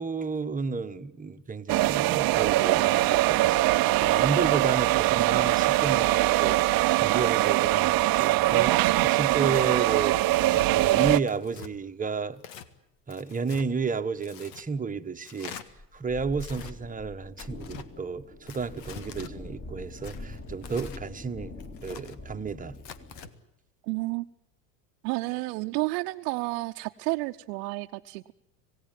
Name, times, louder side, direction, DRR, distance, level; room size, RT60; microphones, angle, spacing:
voice 1, 0.0-10.2 10.6-12.4 13.1-15.6 15.9-21.5 21.8-22.8, right 5 dB, 15° right, 1.3 m, -32 dB
sound 1, 1.7-11.2, right 17 dB, 45° right, 0.8 m, -22 dB
sound 2, 6.0-9.3 9.6-12.2 14.7-14.8 15.7-23.3, left 2 dB, 25° left, 3.8 m, -45 dB
Tearing, 10.3-10.7 11.3-11.7 12.4-12.7 13.1-13.7 14.2-14.7 15.2-15.7 16.3-16.7 17.4-17.9 18.5-19.3 20.0-21.0 21.6-22.2 22.8-23.3, left 8 dB, 80° left, 1.9 m, -45 dB
voice 2, 23.8-24.3 25.0-28.3, right 23 dB, 70° right, 0.9 m, -31 dB
26.5 x 17.5 x 9.1 m
hypercardioid pair, 95°, 50 cm